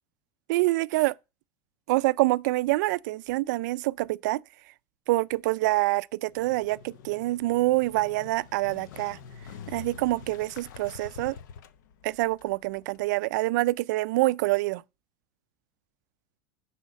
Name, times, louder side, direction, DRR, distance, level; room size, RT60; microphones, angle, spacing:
voice 1, 0.5-1.1 1.9-4.4 5.1-9.2 9.7-11.4 12.0-14.8, right 19 dB, 80° right, 0.4 m, -26 dB
Motorcycle, 6.3-13.1, left 7 dB, 90° left, 0.8 m, -46 dB
10.0 x 4.2 x 5.1 m
supercardioid pair, 155°, 10 cm